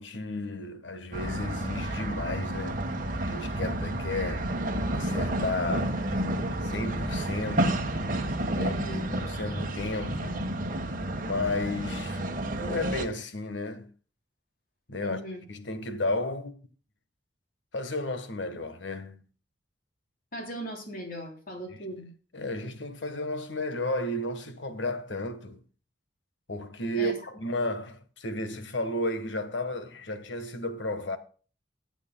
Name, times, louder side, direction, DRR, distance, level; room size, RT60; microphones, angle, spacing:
voice 1, 0.0-2.9 3.2-4.5 4.9-5.9 6.6-7.9 8.5-8.7 9.1-10.4 11.2-12.2 12.5-13.9 14.9-15.2 15.5-16.5 17.7-19.2 22.3-25.6 26.5-31.2, left 2 dB, 90° left, 1.4 m, -33 dB
sound 1, 1.1-13.1, right 1 dB, 50° right, 1.4 m, -30 dB
voice 2, 8.6-9.0 15.0-15.4 20.3-22.1 26.9-27.1, equal, 50° left, 3.1 m, -38 dB
18.5 x 8.3 x 2.3 m
head